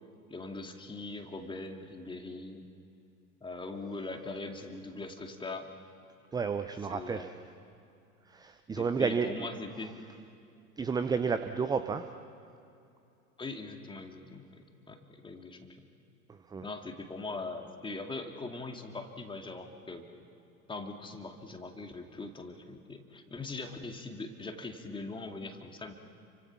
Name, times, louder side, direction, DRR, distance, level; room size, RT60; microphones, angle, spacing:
voice 1, 0.3-2.7 3.4-5.7 6.9-7.3 8.8-10.0 13.4-15.8 16.6-20.1 20.7-25.9, left 3 dB, 10° left, 4 dB, 2.3 m, -41 dB
voice 2, 6.3-7.3 8.3-9.3 10.8-12.0 16.3-16.7, right 5 dB, 10° right, 10 dB, 0.6 m, -31 dB
30.0 x 24.5 x 6.0 m, 2.7 s
figure-of-eight pair, 85°, 45 cm